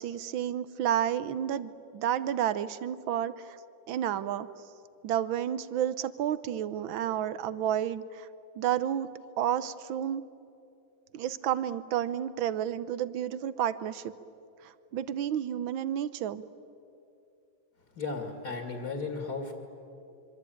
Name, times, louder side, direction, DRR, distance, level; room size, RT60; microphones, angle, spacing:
voice 1, 0.0-3.6 3.9-4.5 5.0-8.3 8.6-9.1 9.4-10.2 11.1-14.1 14.6-16.4, right 10 dB, 85° right, 15 dB, 1.6 m, -31 dB
voice 2, 17.9-19.5, left 4 dB, 55° left, 4 dB, 2.8 m, -35 dB
25.5 x 24.5 x 9.2 m, 2.7 s
omnidirectional pair, 2.1 m